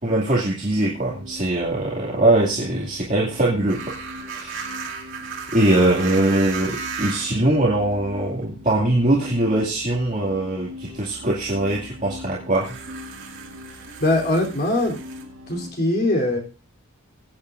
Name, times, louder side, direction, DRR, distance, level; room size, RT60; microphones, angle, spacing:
voice 1, 0.0-3.8 4.2-4.7 5.5-12.7, right 1 dB, 35° right, -5 dB, 2.3 m, -21 dB
sound 1, 0.7-15.7, left 2 dB, 80° right, 4.7 m, -41 dB
sound 2, 3.7-7.4 8.4-8.5 12.6-15.2, right 6 dB, 60° right, 2.5 m, -35 dB
voice 2, 14.0-15.0 15.5-16.4, left 1 dB, 45° left, 1 dB, 3.4 m, -21 dB
22.0 x 8.7 x 2.6 m, 0.34 s
head